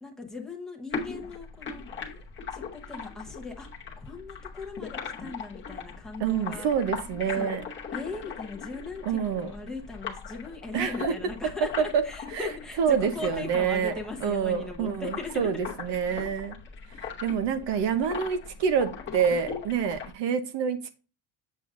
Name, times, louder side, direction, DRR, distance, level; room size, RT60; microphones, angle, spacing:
voice 1, 0.0-1.8 2.5-3.7 4.0-6.7 7.4-7.5 7.9-15.7, left 3 dB, ahead, 0.9 m, -39 dB
sound 1, 0.9-20.1, left 6 dB, 25° left, 1.0 m, -40 dB
voice 2, 6.2-7.6 9.1-9.5 10.7-11.2 11.4-12.0 12.3-12.5 12.8-13.9 14.2-16.6 17.2-20.9, right 7 dB, 60° right, 0.8 m, -27 dB
7.6 x 6.9 x 2.5 m
cardioid pair, 175°, 49 cm